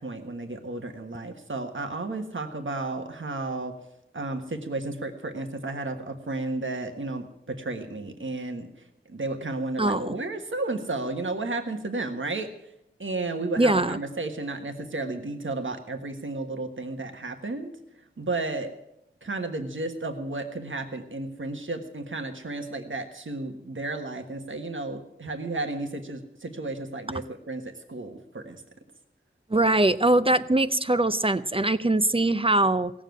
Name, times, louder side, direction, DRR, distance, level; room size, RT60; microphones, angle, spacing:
voice 1, 0.0-3.8 4.1-12.7 13.0-18.8 19.2-28.6, right 2 dB, 75° right, 5 dB, 1.5 m, -33 dB
voice 2, 9.8-10.1 13.6-14.0 29.5-32.9, right 2 dB, 25° right, 12 dB, 0.6 m, -22 dB
17.5 x 7.5 x 9.2 m, 0.84 s
wide cardioid pair, 65°, 20 cm